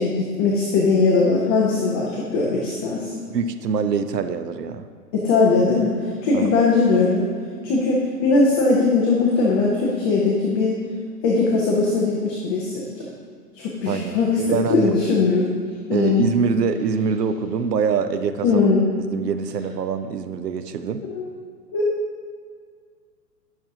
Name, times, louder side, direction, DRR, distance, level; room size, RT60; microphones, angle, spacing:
voice 1, 0.0-3.2 5.1-7.3 7.6-10.8 11.2-13.0 13.5-15.5 15.9-16.2 18.4-18.9 21.0-21.2 21.7-21.9, left 3 dB, 15° left, -3 dB, 0.4 m, -20 dB
voice 2, 3.3-4.8 6.3-6.6 13.9-14.9 15.9-18.6 19.0-21.0, right 6 dB, 80° right, 10 dB, 0.7 m, -24 dB
11.5 x 6.2 x 2.8 m, 2.1 s
figure-of-eight pair, 115°, 48 cm